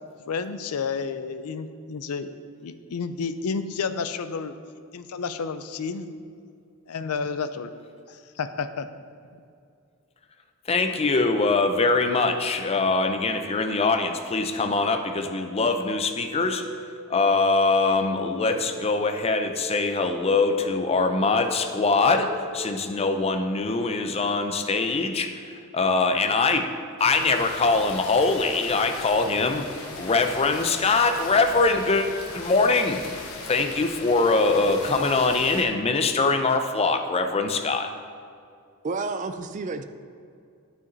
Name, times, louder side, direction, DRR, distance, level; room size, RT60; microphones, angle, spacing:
voice 1, 0.3-2.3 2.6-4.5 4.9-6.1 6.9-7.7 8.1-8.9, left 5 dB, 80° left, 11 dB, 0.5 m, -31 dB
voice 2, 10.7-16.6 17.1-26.7 27.0-29.6 29.9-32.1 32.3-33.0 33.4-37.9, left 3 dB, 25° left, 6 dB, 0.5 m, -23 dB
sound 1, 15.0-23.3, left 1 dB, 75° right, 1.6 m, -42 dB
sound 2, 27.0-35.6, left 3 dB, 65° left, 1.0 m, -39 dB
voice 3, 38.8-39.8, right 3 dB, 35° right, 10 dB, 0.4 m, -30 dB
9.6 x 5.8 x 4.0 m, 2.4 s
head